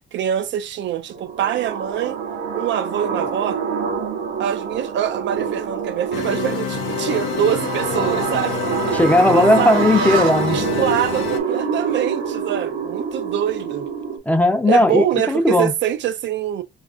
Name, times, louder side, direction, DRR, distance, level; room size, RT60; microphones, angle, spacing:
voice 1, 0.1-2.2 2.5-3.6 4.4-9.7 10.5-13.9 14.7-16.6, right 10 dB, 65° right, 0.4 m, -24 dB
sound 1, 1.1-14.2, right 6 dB, 85° right, 0.8 m, -26 dB
sound 2, 6.1-11.4, left 9 dB, 75° left, 0.6 m, -27 dB
voice 2, 8.9-10.6 14.3-15.7, left 1 dB, 10° left, 0.5 m, -16 dB
4.1 x 2.4 x 2.4 m
cardioid pair, 90°, 20 cm